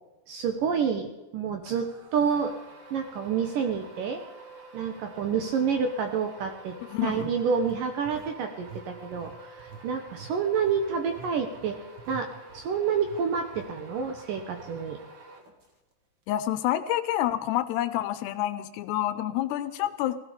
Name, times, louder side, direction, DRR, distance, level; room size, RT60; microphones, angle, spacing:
voice 1, 0.3-2.5 2.9-4.2 4.7-6.7 7.0-11.8 12.1-12.3 12.5-15.0, right 6 dB, 70° right, 5 dB, 2.3 m, -28 dB
sound 1, 1.6-15.9, right 1 dB, 45° right, 1.5 m, -48 dB
sound 2, 2.7-2.8 3.4-3.6 7.1-8.4 8.6-8.9 9.1-13.2 13.5-13.7 14.1-14.2 14.6-14.8, right 6 dB, 85° right, 3.6 m, -47 dB
voice 2, 6.9-7.3 16.3-20.2, left 13 dB, 80° left, 12 dB, 2.7 m, -28 dB
16.5 x 16.0 x 5.2 m, 1.0 s
omnidirectional pair, 5.0 m